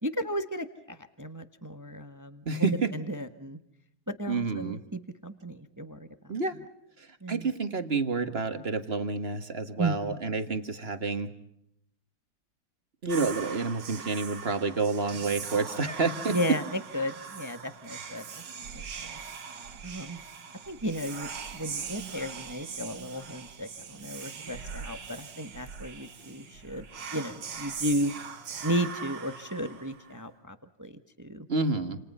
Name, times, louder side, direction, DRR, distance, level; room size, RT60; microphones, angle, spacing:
voice 1, 0.0-3.6 4.1-6.1 7.2-7.5 9.8-10.2 16.3-18.4 18.7-19.2 19.8-20.2 20.7-26.8 27.1-28.1 28.6-31.5, right 1 dB, 10° right, 10 dB, 1.2 m, -34 dB
voice 2, 2.5-2.9 4.3-4.8 6.3-6.6 7.0-11.3 13.0-16.4 31.5-32.0, right 4 dB, 30° right, 9 dB, 1.9 m, -29 dB
Whispering, 13.1-30.2, right 6 dB, 65° right, 2.2 m, -41 dB
29.0 x 28.5 x 5.6 m, 0.77 s
omnidirectional pair, 2.2 m